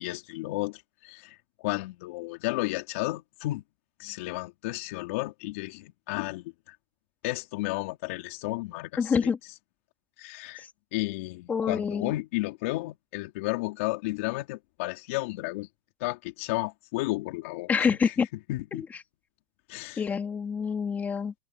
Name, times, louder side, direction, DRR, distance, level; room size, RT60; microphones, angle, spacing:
voice 1, 0.0-3.6 4.0-6.8 7.2-9.3 10.2-10.6 10.9-15.7 16.0-18.1 18.5-18.9 19.7-20.0, left 20 dB, 70° left, 3.9 m, -33 dB
voice 2, 9.0-9.4 11.5-12.1 17.7-18.3 18.7-18.8 20.0-21.3, left 6 dB, 20° left, 2.7 m, -26 dB
supercardioid pair, 120°, 7 cm